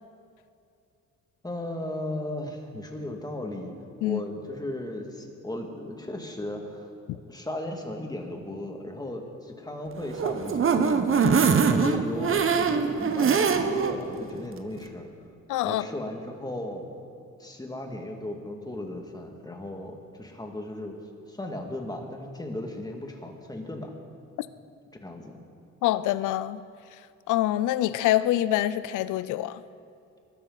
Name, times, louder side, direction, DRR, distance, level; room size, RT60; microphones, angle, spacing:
voice 1, 1.4-6.9 7.3-11.3 11.7-15.1 15.6-16.8 17.4-21.0 21.3-23.9 25.0-25.4, left 1 dB, 15° left, 2 dB, 2.2 m, -36 dB
sound 1, 10.0-13.9 14.4-14.5 14.8-14.9, right 5 dB, 45° right, 1.1 m, -23 dB
voice 2, 15.5-15.8 25.8-26.6 27.3-29.6, left 14 dB, 85° left, 15 dB, 0.5 m, -25 dB
22.0 x 12.5 x 4.1 m, 2.5 s
cardioid pair, 90°, 30 cm